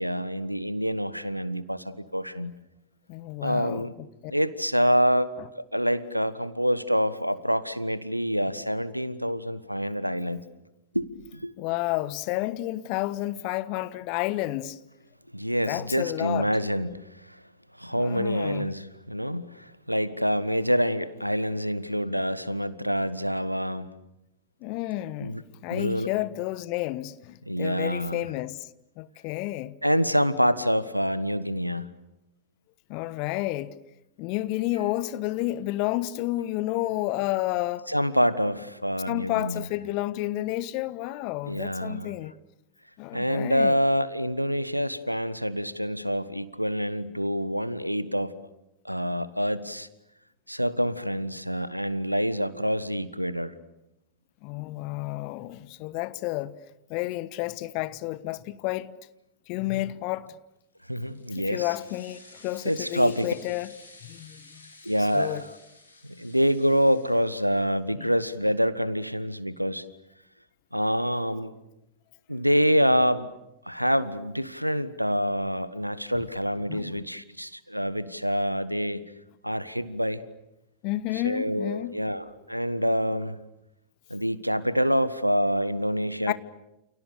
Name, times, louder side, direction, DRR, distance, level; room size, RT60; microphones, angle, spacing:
voice 1, 0.0-2.5 3.4-3.9 4.3-10.4 10.9-11.5 15.3-17.0 17.3-17.4 17.8-23.8 25.2-25.4 25.7-26.1 27.5-28.3 29.8-31.9 37.9-39.7 41.5-42.1 43.1-48.3 48.8-49.9 50.5-53.5 60.9-61.7 62.6-63.3 64.8-65.5 66.0-69.8 70.7-71.5 72.3-73.3 73.7-79.0 79.4-80.2 81.2-83.4 84.1-86.3, equal, 90° right, 1.4 m, -26 dB
voice 2, 3.1-4.3 11.6-14.8 15.6-16.5 17.9-18.7 24.6-28.6 29.0-29.8 32.9-33.7 34.2-37.9 39.1-42.3 43.0-43.7 54.4-56.5 56.9-58.9 59.5-60.3 61.3-63.7 64.0-64.6 65.1-65.4 68.0-68.1 76.1-76.2 76.7-77.0 80.8-82.0 86.3-86.4, left 17 dB, 45° left, 1.2 m, -31 dB
sound 1, 60.7-67.7, left 3 dB, 80° left, 6.7 m, -52 dB
29.5 x 29.5 x 6.8 m
figure-of-eight pair, 90°, 0 cm